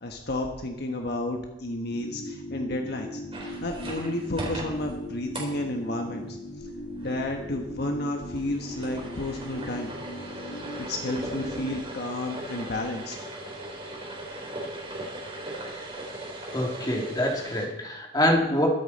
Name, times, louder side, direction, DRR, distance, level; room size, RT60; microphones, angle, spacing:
voice 1, 0.0-3.2 3.6-6.4 7.0-9.9 10.9-13.2, left 1 dB, 60° left, 3 dB, 1.3 m, -31 dB
sound 1, 1.9-11.8, equal, 90° left, 3.8 m, -39 dB
sound 2, 3.3-17.7, right 1 dB, 30° right, 3.7 m, -39 dB
voice 2, 16.5-18.7, left 1 dB, 25° left, 0 dB, 2.6 m, -25 dB
22.5 x 8.6 x 4.2 m, 0.91 s
head